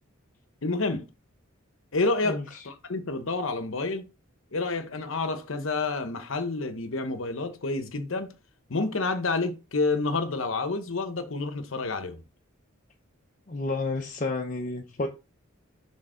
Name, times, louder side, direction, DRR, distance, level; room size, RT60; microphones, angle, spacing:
voice 1, 0.6-1.1 1.9-2.4 2.6-4.0 4.5-8.3 8.7-12.2, left 3 dB, 65° left, 0.9 m, -29 dB
voice 2, 2.2-2.6 13.5-15.1, left 3 dB, 40° left, 0.7 m, -31 dB
6.5 x 3.5 x 4.9 m
head